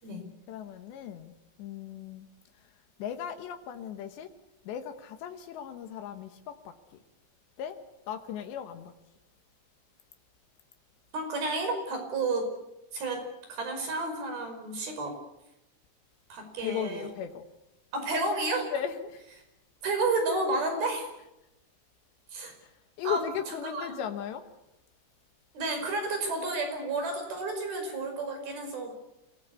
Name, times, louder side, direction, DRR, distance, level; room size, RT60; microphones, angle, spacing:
voice 1, 0.5-2.3 3.0-4.3 4.6-7.0 7.6-7.8 8.1-8.9 16.6-17.4 18.7-19.2 22.6-22.7 23.0-24.4, left 9 dB, 75° left, 3.5 m, -37 dB
voice 2, 11.1-12.5 12.9-13.2 13.5-15.2 16.3-17.1 17.9-18.7 19.8-21.1 22.3-22.5 23.0-23.2 23.6-23.9 25.5-28.9, right 3 dB, 55° right, 6.9 m, -31 dB
27.5 x 19.0 x 8.4 m
omnidirectional pair, 5.1 m